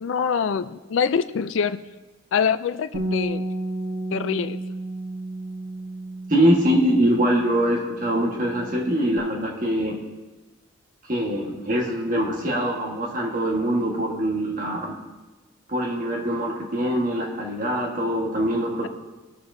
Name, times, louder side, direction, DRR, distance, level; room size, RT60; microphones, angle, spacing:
voice 1, 0.0-1.8 2.3-3.4 4.1-4.6, left 6 dB, 70° left, 13 dB, 0.4 m, -24 dB
Bass guitar, 2.9-9.2, right 2 dB, 85° right, 1.4 m, -33 dB
voice 2, 6.3-10.0 11.1-15.0 15.7-18.9, equal, 40° right, -1 dB, 1.4 m, -23 dB
19.0 x 6.9 x 2.6 m, 1.2 s
head